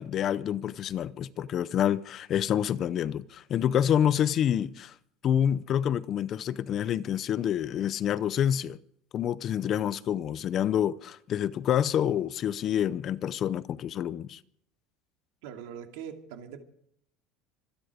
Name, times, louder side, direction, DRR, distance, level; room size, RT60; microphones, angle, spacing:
voice 1, 0.0-4.9 5.2-8.8 9.1-14.4, left 10 dB, 30° left, 0.5 m, -27 dB
voice 2, 15.4-16.6, right 8 dB, 75° right, 2.8 m, -42 dB
26.0 x 10.5 x 5.1 m
cardioid pair, 170°, 0 cm